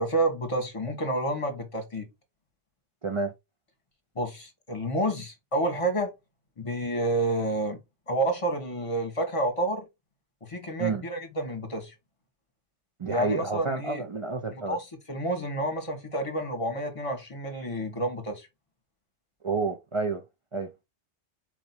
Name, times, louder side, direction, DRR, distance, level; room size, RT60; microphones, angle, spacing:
voice 1, 0.0-2.1 4.1-6.1 6.6-7.8 8.1-9.9 10.4-11.9 13.1-14.0 14.5-18.5, right 1 dB, 30° left, 1.2 m, -29 dB
voice 2, 3.0-3.3 10.8-11.0 13.0-14.8 19.4-20.2 20.5-20.7, right 4 dB, 50° right, 0.4 m, -29 dB
4.4 x 2.8 x 4.2 m
omnidirectional pair, 1.2 m